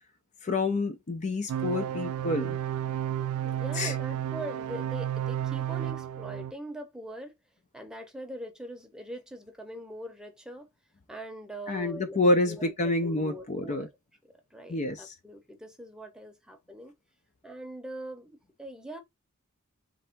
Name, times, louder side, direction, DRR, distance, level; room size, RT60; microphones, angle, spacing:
voice 1, 0.4-2.6 3.7-4.0 11.7-13.9 14.7-15.2, left 2 dB, 35° left, 0.5 m, -28 dB
sound 1, 1.5-6.5, right 10 dB, 85° right, 0.3 m, -32 dB
voice 2, 3.4-7.3 7.7-10.7 11.1-13.9 14.5-16.9 17.4-19.0, equal, 5° right, 0.8 m, -42 dB
3.3 x 2.6 x 4.4 m
head